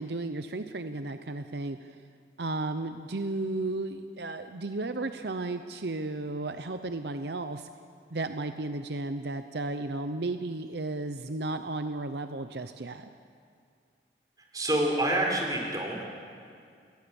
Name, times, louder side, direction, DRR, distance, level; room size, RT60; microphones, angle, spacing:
voice 1, 0.0-1.9 2.4-7.7 8.1-13.1, right 2 dB, 70° right, 8 dB, 0.8 m, -34 dB
voice 2, 14.5-16.0, right 1 dB, 20° right, 0 dB, 4.1 m, -27 dB
29.5 x 20.0 x 7.2 m, 2.3 s
head